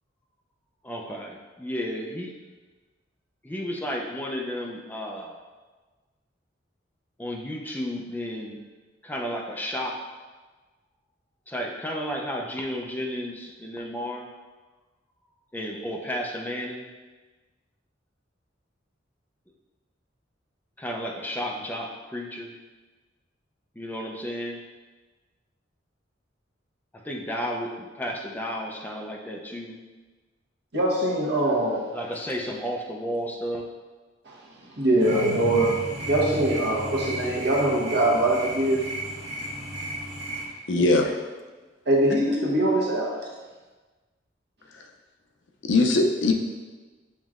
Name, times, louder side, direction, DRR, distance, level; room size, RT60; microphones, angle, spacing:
voice 1, 0.8-2.3 3.4-5.4 7.2-8.6 9.0-10.0 11.5-14.3 15.5-16.9 20.8-22.5 23.8-24.6 26.9-29.7 31.9-33.6, equal, 10° left, 0 dB, 0.5 m, -32 dB
voice 2, 30.7-31.9 34.2-34.4 34.7-38.9 40.8-40.9 41.9-43.1, right 1 dB, 65° right, -3 dB, 1.0 m, -23 dB
sound 1, 35.0-40.4, right 1 dB, 85° right, 1.0 m, -33 dB
voice 3, 40.7-41.1 44.7-44.8 45.6-46.3, left 2 dB, 75° left, 3 dB, 0.5 m, -21 dB
7.2 x 3.0 x 2.4 m, 1.3 s
head